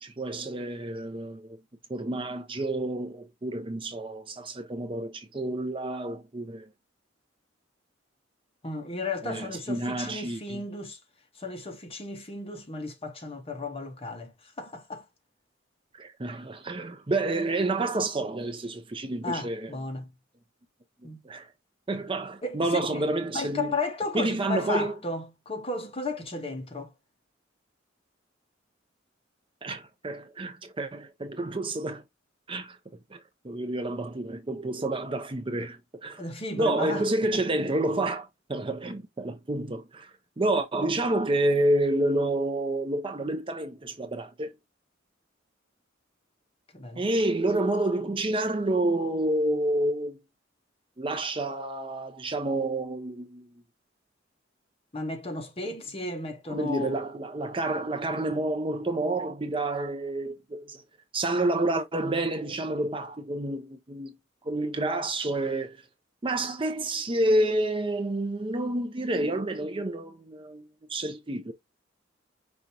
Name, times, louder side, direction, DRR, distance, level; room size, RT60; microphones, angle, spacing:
voice 1, 0.0-1.6 1.9-6.6 9.2-10.6 16.0-19.7 21.2-21.5 21.9-23.7 24.1-24.9 29.6-32.0 32.5-32.8 33.1-33.2 33.4-36.3 36.6-40.1 40.4-44.5 46.9-50.2 51.0-53.5 56.5-60.8 61.1-64.1 64.4-65.8 66.2-71.5, right 2 dB, 25° right, 0.6 m, -29 dB
voice 2, 8.6-11.0 11.4-14.3 14.6-15.0 19.2-20.1 21.0-21.2 22.4-23.1 23.3-26.9 36.2-37.4 46.7-47.0 54.9-57.0, left 2 dB, 30° left, 1.3 m, -34 dB
5.2 x 3.4 x 2.8 m
head